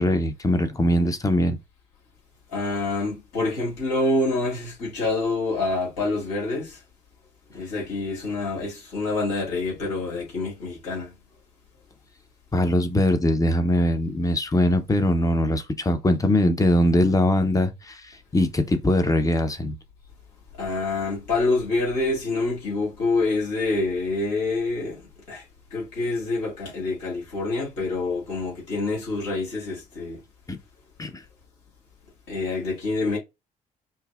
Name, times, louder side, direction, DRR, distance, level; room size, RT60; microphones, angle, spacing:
voice 1, 0.0-1.6 12.5-19.7 30.5-30.6 31.0-31.2, left 1 dB, 15° left, 0.8 m, -22 dB
voice 2, 2.5-6.8 7.5-11.1 20.5-25.0 25.3-25.4 25.7-30.2 32.3-33.2, left 3 dB, 75° left, 2.1 m, -26 dB
5.5 x 2.1 x 2.4 m
figure-of-eight pair, 45°, 20 cm